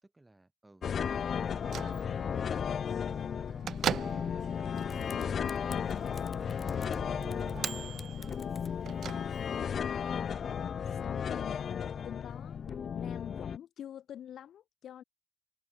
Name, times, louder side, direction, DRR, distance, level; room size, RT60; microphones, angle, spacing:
voice 1, 0.0-2.4 3.2-4.7 7.9-8.3, right 2 dB, 10° right, 6.6 m, -57 dB
sound 1, 0.8-13.6, left 7 dB, 50° left, 0.4 m, -34 dB
Bell / Microwave oven, 1.4-9.7, right 9 dB, 60° right, 0.7 m, -41 dB
Typing, 4.8-9.8, left 5 dB, 30° left, 0.9 m, -50 dB
voice 2, 5.7-6.1 10.5-12.6 12.9-15.0, left 10 dB, 70° left, 6.2 m, -46 dB
cardioid pair, 140°, 0 cm